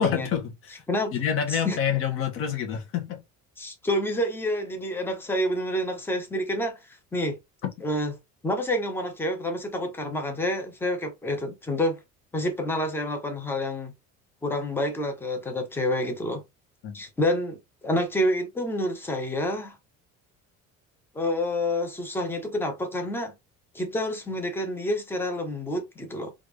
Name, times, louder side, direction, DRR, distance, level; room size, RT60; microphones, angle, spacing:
voice 1, 0.0-0.8 1.1-3.2 16.8-17.0, left 8 dB, 45° left, 1.1 m, -27 dB
voice 2, 3.6-6.8 7.1-7.4 7.8-8.1 8.4-12.0 12.3-13.9 14.4-16.4 16.9-19.8 21.1-23.3 23.7-26.3, left 1 dB, 5° left, 0.6 m, -28 dB
3.5 x 2.5 x 3.1 m
cardioid pair, 170°, 30 cm